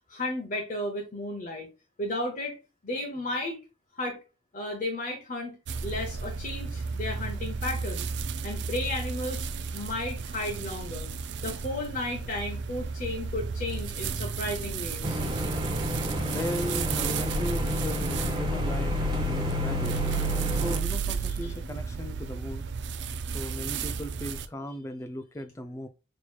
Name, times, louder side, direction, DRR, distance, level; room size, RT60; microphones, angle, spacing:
voice 1, 0.1-1.7 2.0-2.6 2.8-3.6 3.9-4.2 4.5-5.5 5.8-8.1 8.4-9.5 9.7-11.1 11.4-15.2 21.4-21.5, left 1 dB, 45° left, 0.7 m, -33 dB
sound 1, 5.7-24.4, right 4 dB, 60° right, 0.3 m, -32 dB
sound 2, 15.0-20.8, equal, 20° right, 0.7 m, -31 dB
voice 2, 16.3-19.9 20.5-22.7 23.3-25.9, left 1 dB, 15° left, 0.3 m, -37 dB
4.4 x 3.0 x 2.2 m
head